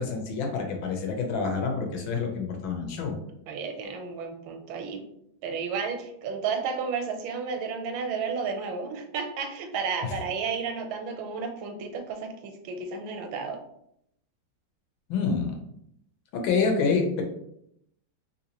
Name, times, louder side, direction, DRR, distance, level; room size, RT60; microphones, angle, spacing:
voice 1, 0.0-3.2 15.1-15.6 16.3-17.2, left 5 dB, 85° left, 2 dB, 1.5 m, -27 dB
voice 2, 3.5-5.0 5.4-13.6, right 5 dB, 90° right, 5 dB, 1.4 m, -32 dB
3.5 x 2.7 x 2.8 m, 0.75 s
omnidirectional pair, 2.1 m